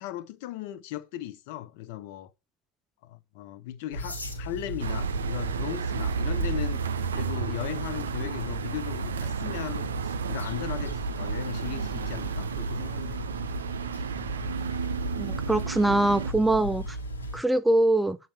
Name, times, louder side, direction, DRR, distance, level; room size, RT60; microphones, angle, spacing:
voice 1, 0.0-2.3 3.0-6.8 7.1-13.3, left 12 dB, 50° left, 0.9 m, -37 dB
sound 1, 3.9-17.4, equal, 85° left, 2.2 m, -36 dB
sound 2, 4.8-16.3, right 7 dB, 65° right, 0.6 m, -33 dB
voice 2, 15.2-17.0 17.3-18.2, right 1 dB, 5° right, 0.5 m, -23 dB
8.7 x 4.2 x 7.1 m
figure-of-eight pair, 90°, 0 cm